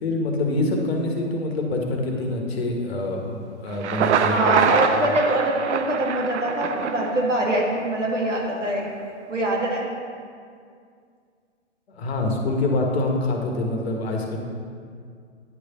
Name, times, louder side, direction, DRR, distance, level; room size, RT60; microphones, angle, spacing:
voice 1, 0.0-4.6 11.9-14.4, left 2 dB, 55° left, 1 dB, 1.4 m, -25 dB
Thunder, 3.7-7.6, right 7 dB, 70° right, 0.5 m, -24 dB
voice 2, 4.3-8.8 9.3-9.9, right 1 dB, 90° right, -2 dB, 1.7 m, -23 dB
9.4 x 3.4 x 5.8 m, 2.2 s
figure-of-eight pair, 120°, 36 cm